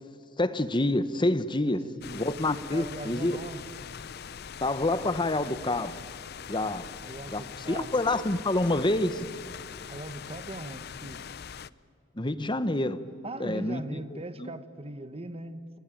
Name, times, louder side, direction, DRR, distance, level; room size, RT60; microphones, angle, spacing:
voice 1, 0.4-1.8 2.1-3.4 4.6-6.0 6.5-6.9 7.3-7.4 7.7-9.3 12.2-13.0 13.4-14.5, left 2 dB, 25° left, 13 dB, 1.0 m, -27 dB
voice 2, 1.6-2.3 2.7-3.6 7.0-7.9 9.9-11.2 13.2-15.8, right 1 dB, 30° right, 11 dB, 1.3 m, -40 dB
sound 1, 2.0-11.7, left 7 dB, 55° left, 0.6 m, -42 dB
29.5 x 22.0 x 9.2 m, 2.5 s
head